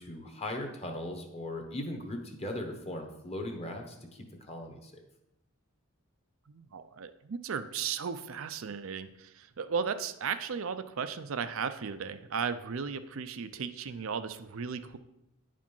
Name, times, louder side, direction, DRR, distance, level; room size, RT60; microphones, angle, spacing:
voice 1, 0.0-4.9, left 1 dB, 25° left, 4 dB, 1.1 m, -38 dB
voice 2, 6.5-15.0, right 6 dB, 60° right, 10 dB, 0.5 m, -35 dB
9.7 x 5.1 x 5.4 m, 0.88 s
head